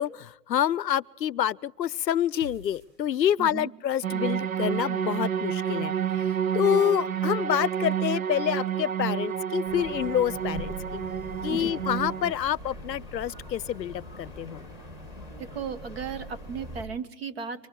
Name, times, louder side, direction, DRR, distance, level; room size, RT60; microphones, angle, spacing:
voice 1, 0.0-6.2 6.5-11.0 11.4-14.6, left 10 dB, 85° left, 0.7 m, -27 dB
sound 1, 2.4-3.7, right 2 dB, 85° right, 5.5 m, -47 dB
voice 2, 3.4-3.7 11.5-11.7 15.4-17.7, right 6 dB, 40° right, 1.6 m, -35 dB
sound 2, 4.0-12.3, right 9 dB, 55° right, 0.8 m, -29 dB
sound 3, 9.6-16.8, left 1 dB, 5° right, 2.3 m, -42 dB
25.0 x 24.5 x 4.8 m
hypercardioid pair, 160°, 49 cm